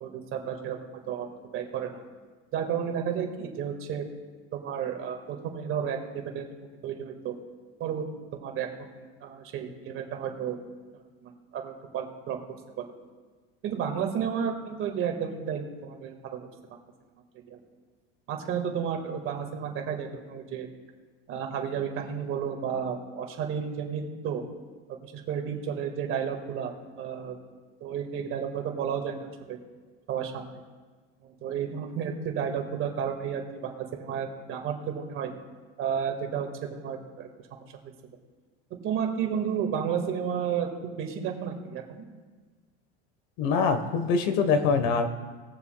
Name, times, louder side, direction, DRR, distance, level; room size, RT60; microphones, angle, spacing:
voice 1, 0.0-0.8 1.1-1.3 1.5-2.0 2.5-4.0 4.5-6.5 6.8-7.3 7.8-8.0 8.3-10.6 10.9-12.4 12.8-12.9 13.6-16.5 17.5-17.6 18.3-20.7 21.3-24.4 25.1-26.7 27.0-27.4 27.8-29.6 30.1-30.6 31.2-35.3 35.8-37.9 38.8-42.0, right 8 dB, 45° right, 3 dB, 1.8 m, -32 dB
voice 2, 43.4-45.1, left 5 dB, 60° left, 9 dB, 1.2 m, -24 dB
20.5 x 7.0 x 2.3 m, 1.4 s
supercardioid pair, 125°, 30 cm